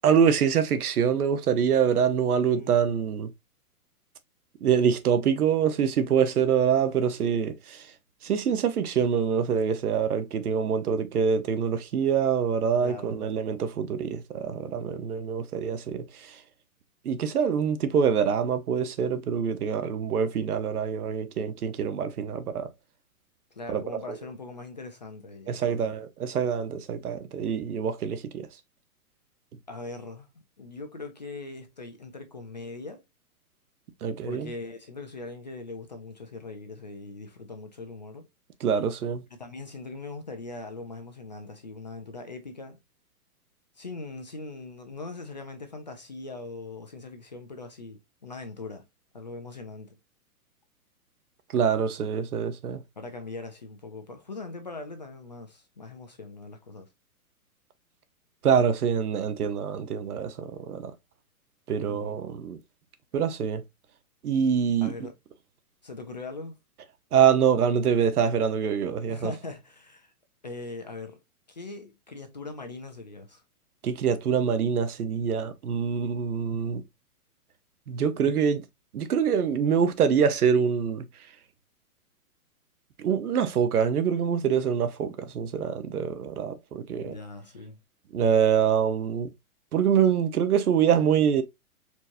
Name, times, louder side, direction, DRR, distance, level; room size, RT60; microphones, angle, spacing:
voice 1, 0.0-3.3 4.6-7.9 8.2-16.4 17.0-22.7 23.7-23.8 24.1-24.2 25.5-28.5 34.0-34.5 38.6-39.2 51.5-52.8 58.4-60.9 61.7-62.6 63.1-63.6 64.2-64.9 67.1-69.3 73.8-76.8 77.9-78.6 78.9-81.1 83.0-87.1 88.1-89.3 89.7-91.4, right 7 dB, 85° right, 0.9 m, -25 dB
voice 2, 12.6-13.3 23.5-25.9 29.7-30.3 30.6-33.0 34.2-38.2 39.4-42.8 43.8-48.9 49.1-50.0 53.0-56.9 61.8-62.2 64.8-65.1 65.8-66.6 69.1-70.1 70.4-71.2 71.5-73.4 86.9-87.8, left 3 dB, 30° left, 0.4 m, -41 dB
4.5 x 2.9 x 2.5 m
hypercardioid pair, 165°, 44 cm